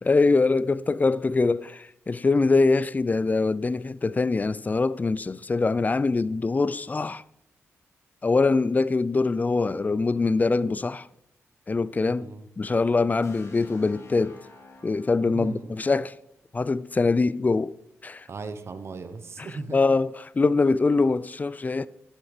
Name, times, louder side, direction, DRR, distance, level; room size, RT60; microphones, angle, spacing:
voice 1, 0.0-7.2 8.2-11.1 11.7-12.3 12.6-14.4 14.8-16.2 16.5-17.7 18.0-18.3 19.4-21.9, left 3 dB, 30° left, 0.4 m, -23 dB
voice 2, 12.1-12.4 15.2-15.7 18.3-19.8, right 4 dB, 60° right, 1.0 m, -37 dB
sound 1, 13.2-17.1, left 2 dB, 65° left, 2.3 m, -51 dB
12.0 x 7.4 x 5.0 m
cardioid pair, 65°, 5 cm